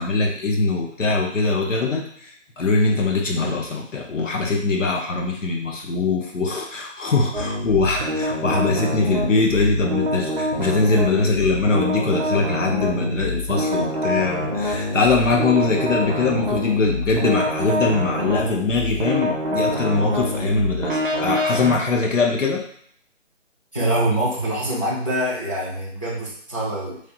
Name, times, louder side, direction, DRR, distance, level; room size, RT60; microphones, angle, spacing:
voice 1, 0.0-22.6, left 3 dB, 75° left, 0 dB, 0.9 m, -22 dB
sound 1, 7.3-21.8, left 1 dB, 45° right, 0.5 m, -25 dB
voice 2, 23.7-27.0, right 1 dB, 25° left, -7 dB, 0.5 m, -24 dB
3.2 x 2.0 x 2.9 m, 0.64 s
figure-of-eight pair, 165°, 38 cm